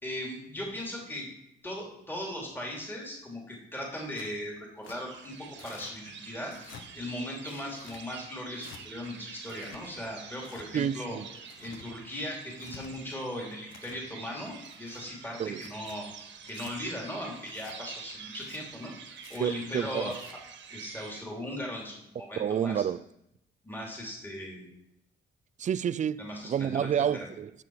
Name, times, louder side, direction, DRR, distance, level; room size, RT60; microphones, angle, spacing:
voice 1, 0.0-1.3 1.6-6.5 6.9-11.2 11.6-16.1 16.4-20.1 20.7-22.8 23.6-24.7 26.2-26.9, left 1 dB, 10° left, 2.8 m, -38 dB
Tearing, 4.1-4.4 4.8-5.0 5.6-5.9 6.4-6.8 7.4-8.0 8.6-8.8 9.4-9.8 10.4-10.7 11.3-11.9 12.4-12.9 13.5-14.0 14.6-15.1 15.5-16.0 16.5-16.7 17.5-17.8 18.3-18.6 19.2-19.4 20.0-20.3, left 6 dB, 85° left, 1.2 m, -50 dB
sound 1, 4.9-21.2, right 6 dB, 70° right, 1.5 m, -47 dB
voice 2, 10.7-11.3 15.4-15.6 19.4-20.2 22.4-23.0 25.6-27.5, right 9 dB, 40° right, 0.4 m, -29 dB
11.5 x 6.8 x 4.7 m
cardioid pair, 90°, 20 cm